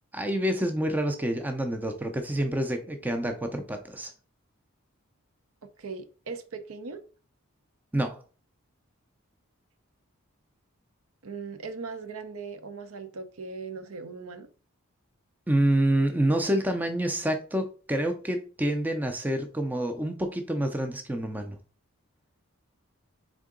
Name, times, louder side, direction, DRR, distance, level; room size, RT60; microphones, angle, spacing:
voice 1, 0.1-4.1 7.9-8.2 15.5-21.6, right 1 dB, 10° right, 0.4 m, -27 dB
voice 2, 5.8-7.0 11.2-14.5, right 4 dB, 80° right, 0.6 m, -39 dB
3.7 x 3.6 x 3.7 m
head